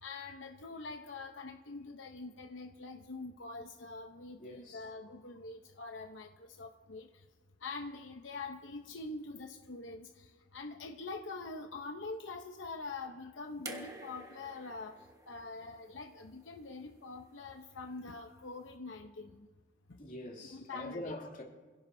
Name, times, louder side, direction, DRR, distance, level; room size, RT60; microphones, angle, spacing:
voice 1, 0.0-7.1 7.6-14.9 15.3-19.5 19.9-20.0 20.5-21.1, left 3 dB, 75° left, 0.8 m, -44 dB
voice 2, 4.4-4.8 20.0-21.4, left 1 dB, 45° left, 2.7 m, -44 dB
sound 1, 13.6-16.8 18.0-18.1, right 2 dB, 20° right, 1.3 m, -49 dB
26.5 x 16.5 x 2.7 m
head